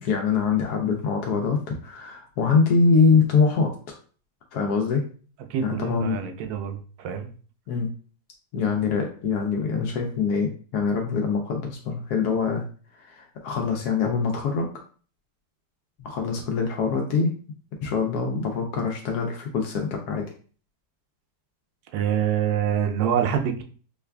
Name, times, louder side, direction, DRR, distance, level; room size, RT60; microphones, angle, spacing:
voice 1, 0.0-3.7 4.5-5.0 5.6-6.2 7.7-7.9 8.5-12.6 12.9-14.7 16.0-17.3 17.8-20.3, left 5 dB, 75° left, 1 dB, 1.1 m, -24 dB
voice 2, 5.5-7.3 21.9-23.6, right 9 dB, 75° right, 6 dB, 1.1 m, -25 dB
4.8 x 2.4 x 2.2 m, 0.40 s
omnidirectional pair, 1.7 m